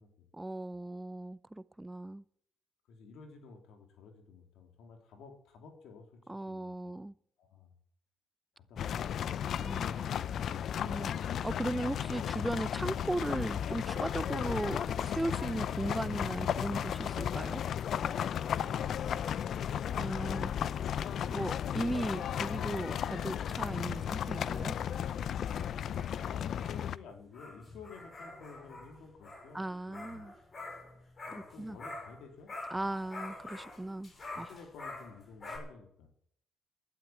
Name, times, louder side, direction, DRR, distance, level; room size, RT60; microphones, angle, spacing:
voice 1, 0.3-2.2 6.3-7.1 9.6-10.2 10.8-17.6 20.0-20.5 21.3-24.7 29.5-30.3 31.3-31.8 32.7-34.1 34.4-34.5, right 1 dB, 10° right, 17 dB, 0.5 m, -37 dB
voice 2, 2.9-6.2 6.5-6.9 7.4-7.7 8.6-9.2 18.7-19.6 26.2-30.3 31.3-33.0 34.3-36.1, left 5 dB, 80° left, 4 dB, 3.5 m, -52 dB
sound 1, 8.8-27.0, left 9 dB, 65° left, 0.5 m, -34 dB
sound 2, 25.4-32.2 32.5-35.6, left 2 dB, 40° left, 5.9 m, -47 dB
12.0 x 11.0 x 9.1 m, 0.68 s
cardioid pair, 90°, 0 cm